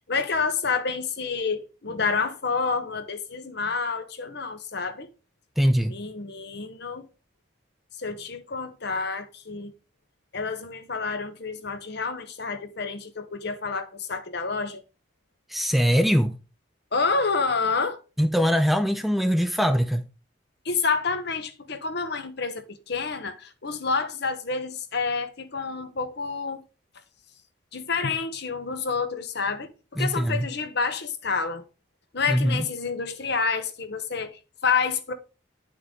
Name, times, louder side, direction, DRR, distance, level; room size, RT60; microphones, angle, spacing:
voice 1, 0.1-5.1 5.9-7.0 8.0-9.7 10.3-14.8 16.9-18.0 20.6-26.6 27.7-31.6 32.1-35.1, left 4 dB, 55° left, 1.0 m, -28 dB
voice 2, 5.6-5.9 15.5-16.3 18.2-20.0 30.0-30.5 32.3-32.6, equal, ahead, 0.4 m, -22 dB
9.8 x 5.7 x 3.7 m
head